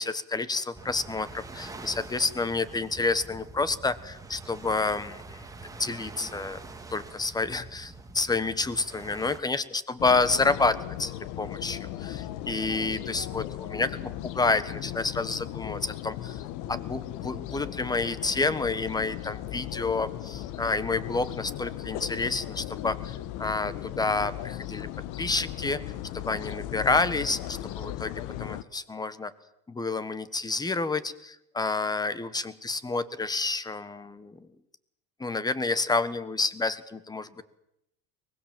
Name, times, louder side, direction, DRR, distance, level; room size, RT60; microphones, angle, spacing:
voice 1, 0.0-5.5 5.8-6.6 6.9-16.4 16.7-24.9 25.2-25.8 26.1-29.3 29.7-34.5 35.2-37.4, left 3 dB, 10° left, 15 dB, 1.3 m, -29 dB
sound 1, 0.7-9.4, right 3 dB, 10° right, 2.0 m, -45 dB
sound 2, 10.0-28.6, left 13 dB, 65° left, 1.2 m, -37 dB
23.5 x 20.5 x 7.6 m, 0.81 s
cardioid pair, 130°, 33 cm